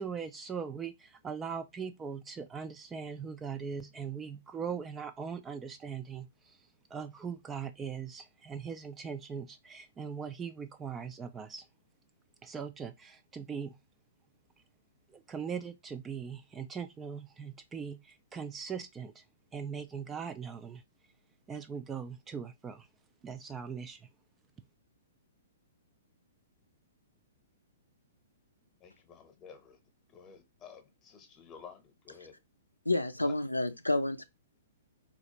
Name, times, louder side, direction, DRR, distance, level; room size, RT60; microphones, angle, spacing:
voice 1, 0.0-6.3 6.9-11.6 12.4-13.8 15.1-19.2 19.5-20.8 21.5-22.9 23.2-24.0, right 6 dB, 15° right, 0.3 m, -40 dB
voice 2, 28.8-29.8 30.1-32.4 33.3-33.4, left 6 dB, 20° left, 0.9 m, -52 dB
voice 3, 32.9-34.2, left 2 dB, 85° left, 0.4 m, -29 dB
4.2 x 2.4 x 2.8 m
figure-of-eight pair, 115°, 0 cm